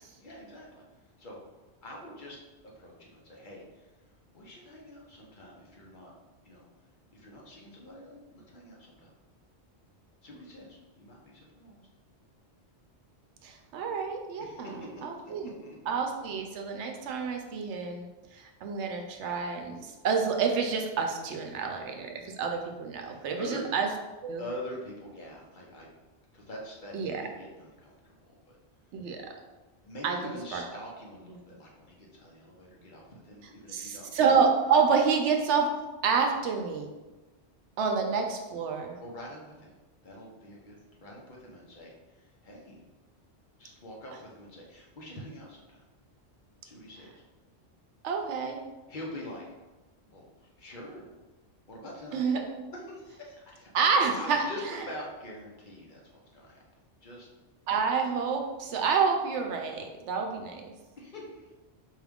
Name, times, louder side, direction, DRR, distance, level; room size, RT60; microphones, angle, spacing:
voice 1, 0.2-0.8 1.2-1.4 1.8-2.4 2.6-3.9 4.3-6.1 6.4-6.7 7.1-9.1 10.2-11.9 14.4-15.0 15.6-15.8 23.1-23.6 24.4-25.9 26.3-26.9 27.2-27.9 28.4-28.6 29.8-34.1 39.0-39.7 40.0-42.8 43.6-45.8 46.6-47.2 48.9-49.4 50.1-51.1 51.7-52.3 52.7-53.7 54.2-54.6 54.9-56.6 57.0-57.3 60.9-61.5, left 1 dB, 50° left, -2 dB, 0.8 m, -45 dB
voice 2, 13.4-14.7 15.0-15.6 15.9-18.1 18.3-23.9 24.2-24.4 26.9-27.3 28.9-29.3 30.0-30.6 33.7-35.7 36.0-36.9 37.8-39.0 48.0-48.6 52.1-52.4 53.7-54.4 57.7-60.8, right 5 dB, 80° right, 3 dB, 0.9 m, -28 dB
4.6 x 2.3 x 3.4 m, 1.2 s
omnidirectional pair, 1.2 m